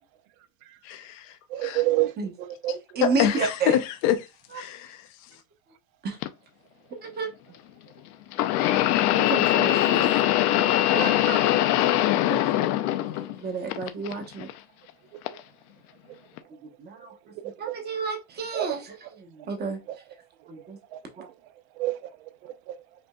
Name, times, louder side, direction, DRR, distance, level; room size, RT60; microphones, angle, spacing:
voice 1, 0.9-1.2 1.6-1.8 3.0-4.2 4.6-5.0, left 10 dB, 35° left, 0.5 m, -25 dB
voice 2, 1.5-2.1 2.4-2.8 12.3-12.4 17.4-17.7 18.5-18.8 19.9-20.0 21.8-21.9 22.4-22.8, right 16 dB, 60° right, 0.7 m, -27 dB
voice 3, 2.9-3.8 4.5-4.6 6.0-6.2 7.0-7.3 9.2-10.1 10.9-11.5 13.4-14.5 16.8-17.1 17.6-19.8 20.5-20.8 21.2-21.3, right 4 dB, 20° right, 0.9 m, -31 dB
sound 1, 6.2-6.3 8.3-13.4 13.7-14.5 15.3-15.4 16.4-16.5, left 13 dB, 70° left, 0.7 m, -22 dB
5.2 x 2.7 x 2.2 m
supercardioid pair, 140°, 47 cm